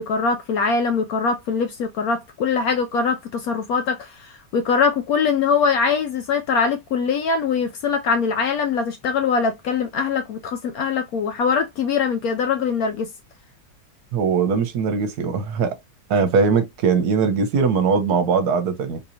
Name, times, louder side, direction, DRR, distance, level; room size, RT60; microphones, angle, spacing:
voice 1, 0.0-13.1, left 5 dB, 70° left, 0.9 m, -22 dB
voice 2, 14.1-15.8 16.1-19.0, right 5 dB, 70° right, 1.1 m, -20 dB
3.7 x 2.8 x 2.7 m
omnidirectional pair, 1.9 m